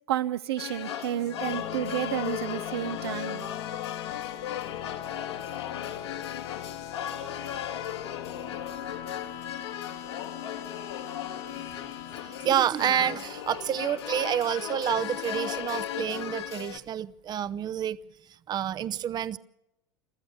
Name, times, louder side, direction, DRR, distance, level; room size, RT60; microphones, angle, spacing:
voice 1, 0.1-3.5, right 12 dB, 70° right, 0.8 m, -31 dB
sound 1, 0.6-16.8, left 10 dB, 75° left, 2.2 m, -36 dB
sound 2, 1.1-13.4, left 11 dB, 50° left, 1.4 m, -40 dB
voice 2, 12.2-18.0 18.5-19.4, right 10 dB, 30° right, 0.7 m, -28 dB
24.0 x 14.0 x 8.4 m
figure-of-eight pair, 85°, 14 cm